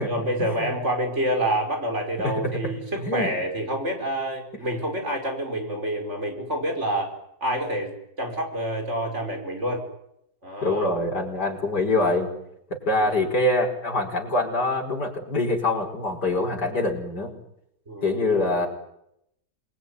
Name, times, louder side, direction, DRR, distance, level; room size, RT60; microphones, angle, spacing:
voice 1, 0.0-7.1 7.4-9.8 10.4-10.9 12.9-13.1 17.9-18.2, right 1 dB, 40° right, 3 dB, 5.7 m, -28 dB
voice 2, 2.2-3.3 10.6-12.3 12.7-17.3 18.0-18.7, left 2 dB, 70° left, 2 dB, 5.8 m, -25 dB
27.5 x 21.0 x 9.8 m, 0.80 s
omnidirectional pair, 1.9 m